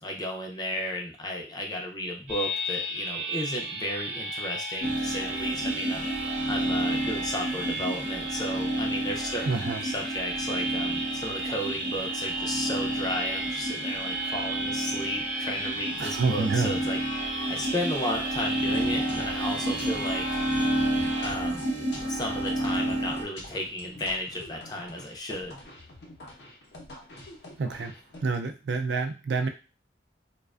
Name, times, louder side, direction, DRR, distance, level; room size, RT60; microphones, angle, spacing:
voice 1, 0.0-6.1 6.5-17.0 17.5-20.4 21.2-21.6 22.1-25.6, left 1 dB, 20° left, 1 dB, 0.4 m, -34 dB
sound 1, 2.3-21.3, right 1 dB, 55° right, 0.9 m, -34 dB
sound 2, 4.8-23.2, right 1 dB, 35° right, 0.6 m, -31 dB
voice 2, 9.5-9.8 16.0-16.8 27.6-28.0 28.2-29.5, right 4 dB, 75° right, 6 dB, 0.3 m, -28 dB
sound 3, 18.7-28.4, left 1 dB, 75° left, 0.6 m, -46 dB
2.4 x 2.2 x 2.3 m, 0.32 s
head